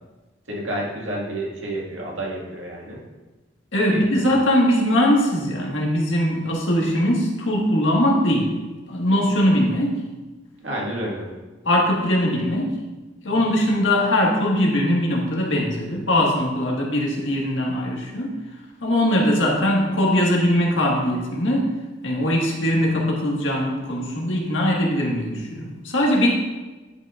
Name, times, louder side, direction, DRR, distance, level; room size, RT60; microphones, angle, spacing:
voice 1, 0.5-3.0 3.9-4.3 10.6-11.3, right 1 dB, 80° right, -3 dB, 2.0 m, -30 dB
voice 2, 3.7-8.6 8.9-10.0 11.7-12.7 13.2-18.3 18.8-21.7 22.0-26.3, left 1 dB, 80° left, -2 dB, 1.7 m, -21 dB
10.5 x 6.1 x 2.5 m, 1.2 s
head